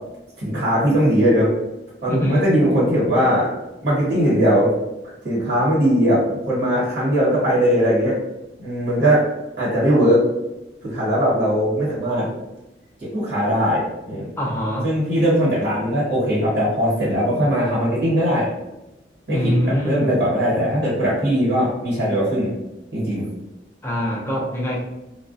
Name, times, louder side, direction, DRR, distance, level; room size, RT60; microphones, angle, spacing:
voice 1, 0.4-1.5 2.0-3.5 3.8-4.7 5.2-8.2 8.6-9.2 9.6-10.2 10.8-12.3 13.0-14.3 14.8-18.5 19.3-22.5 22.9-23.3, equal, 65° right, -8 dB, 1.3 m, -19 dB
voice 2, 2.1-2.5 14.4-14.9 19.3-20.2 23.8-24.8, equal, 10° left, -4 dB, 0.4 m, -23 dB
2.3 x 2.1 x 2.5 m, 0.97 s
head